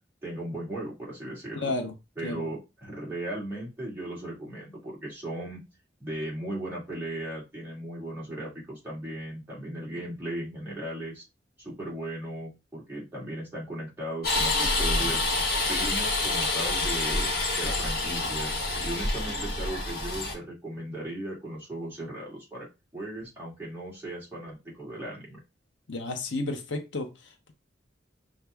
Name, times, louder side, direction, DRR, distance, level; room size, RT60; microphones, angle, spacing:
voice 1, 0.2-1.7 2.2-5.6 6.0-11.2 11.6-15.3 15.7-18.5 18.8-22.7 22.9-25.4, right 1 dB, 10° right, 2.0 m, -37 dB
voice 2, 1.5-1.9 2.2-2.4 25.9-27.5, left 2 dB, 80° left, 0.8 m, -32 dB
sound 1, 14.2-20.3, left 2 dB, 55° left, 1.3 m, -27 dB
5.6 x 2.5 x 3.4 m
head